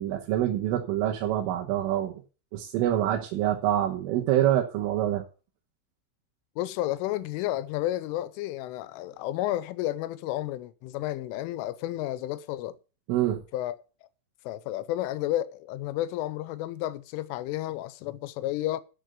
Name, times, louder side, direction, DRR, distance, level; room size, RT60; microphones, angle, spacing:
voice 1, 0.0-2.2 2.5-5.2 13.1-13.4, right 12 dB, 85° right, 3.8 m, -26 dB
voice 2, 6.6-12.8 13.5-13.8 14.4-18.8, left 14 dB, 85° left, 3.3 m, -31 dB
11.5 x 6.8 x 6.7 m
omnidirectional pair, 5.6 m